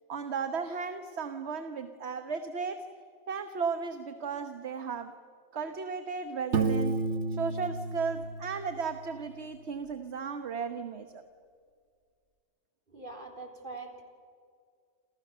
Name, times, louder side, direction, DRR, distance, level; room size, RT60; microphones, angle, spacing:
voice 1, 0.1-2.8 3.3-5.1 5.5-7.0 7.3-11.2, right 5 dB, 70° right, 7 dB, 1.4 m, -35 dB
Piano, 6.5-9.3, right 4 dB, 90° right, 1.5 m, -31 dB
voice 2, 12.9-14.0, right 3 dB, 45° right, 2 dB, 4.2 m, -43 dB
29.5 x 28.5 x 6.8 m, 2.2 s
omnidirectional pair, 1.2 m